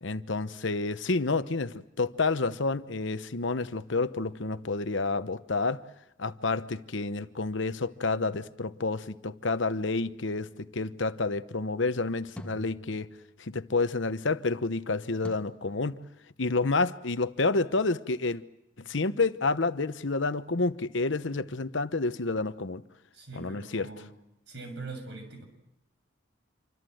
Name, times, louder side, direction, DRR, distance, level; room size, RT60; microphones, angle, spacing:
voice 1, 0.0-5.8 6.2-13.1 13.4-16.0 16.4-18.4 18.9-22.8 23.3-23.9, left 3 dB, 70° left, 1.0 m, -29 dB
sound 1, 10.7-10.8 12.4-13.6 15.2-15.4, left 1 dB, 5° left, 1.5 m, -45 dB
voice 2, 23.1-24.2 24.5-25.4, right 3 dB, 60° right, 6.9 m, -42 dB
27.0 x 25.5 x 7.8 m
head